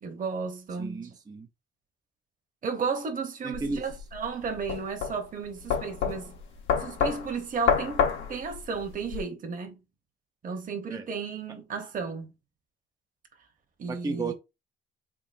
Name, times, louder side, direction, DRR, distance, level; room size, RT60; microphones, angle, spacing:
voice 1, 0.0-1.1 2.6-6.3 6.8-9.8 10.4-12.3 13.8-14.3, right 5 dB, 40° right, 1.0 m, -33 dB
voice 2, 0.8-1.5 3.4-3.9 10.9-11.1 13.9-14.3, right 3 dB, 20° right, 0.5 m, -33 dB
sound 1, 3.5-9.2, left 7 dB, 90° left, 1.0 m, -29 dB
3.6 x 3.6 x 2.6 m
cardioid pair, 90°, 20 cm